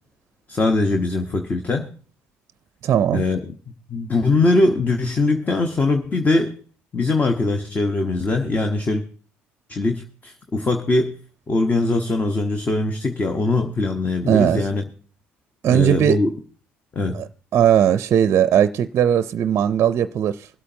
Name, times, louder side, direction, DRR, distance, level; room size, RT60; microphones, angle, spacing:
voice 1, 0.5-1.9 3.1-3.5 3.9-6.6 6.9-9.0 9.7-11.2 11.5-14.8 15.7-16.3 16.9-17.2, left 2 dB, 30° left, 1.1 m, -21 dB
voice 2, 2.8-3.2 14.3-14.6 15.6-16.2 17.1-17.3 17.5-20.5, right 9 dB, 55° right, 0.5 m, -18 dB
23.5 x 8.4 x 2.8 m
supercardioid pair, 75°, 5 cm